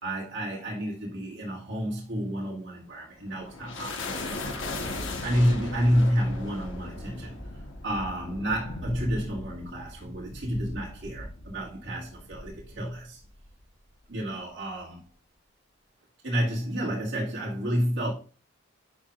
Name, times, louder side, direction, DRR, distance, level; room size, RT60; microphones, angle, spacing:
voice 1, 0.0-4.6 5.2-7.4 7.8-13.2 14.1-15.0 16.2-18.1, equal, 60° right, 2.2 m, -29 dB
sound 1, 2.9-13.6, left 2 dB, 60° left, 1.2 m, -38 dB
10.5 x 4.8 x 2.5 m
head